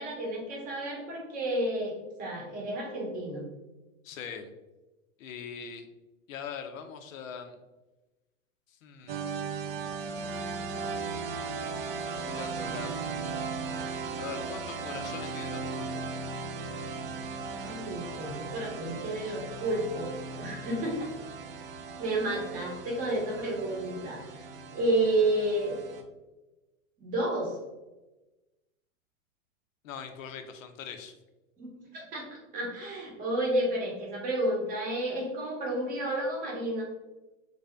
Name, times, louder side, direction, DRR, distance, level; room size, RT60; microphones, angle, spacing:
voice 1, 0.0-3.4 17.5-20.1 20.4-21.0 22.0-25.7 27.0-27.6 31.6-36.8, right 1 dB, 20° right, -1 dB, 0.8 m, -31 dB
voice 2, 4.0-4.5 5.2-5.9 6.3-7.6 8.7-9.3 11.3-13.1 14.2-16.1 29.8-31.1, left 7 dB, 70° left, 7 dB, 0.6 m, -42 dB
sound 1, 9.1-26.0, right 4 dB, 45° right, 0.4 m, -37 dB
3.3 x 2.6 x 3.3 m, 1.1 s
hypercardioid pair, 140°, 42 cm